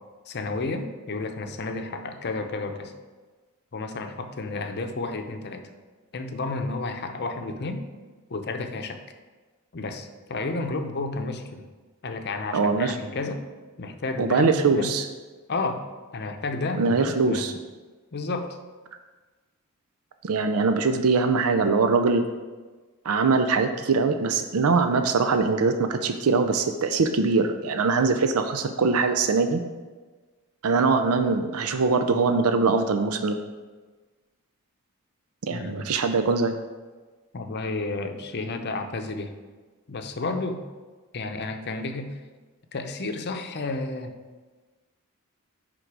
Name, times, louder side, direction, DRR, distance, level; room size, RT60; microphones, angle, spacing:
voice 1, 0.3-2.9 3.7-5.7 6.1-7.8 8.3-9.0 9.7-11.7 12.0-13.5 13.8-14.9 15.5-15.8 16.1-17.5 18.1-18.6 35.5-35.9 37.3-39.3 39.9-40.6 41.1-42.2 42.7-44.1, left 3 dB, 50° left, 6 dB, 0.7 m, -31 dB
voice 2, 12.5-13.0 14.2-15.1 16.8-17.5 20.2-22.2 23.0-29.6 30.6-33.4 35.4-36.6, right 4 dB, 80° right, 7 dB, 0.5 m, -22 dB
9.8 x 3.8 x 4.7 m, 1.3 s
head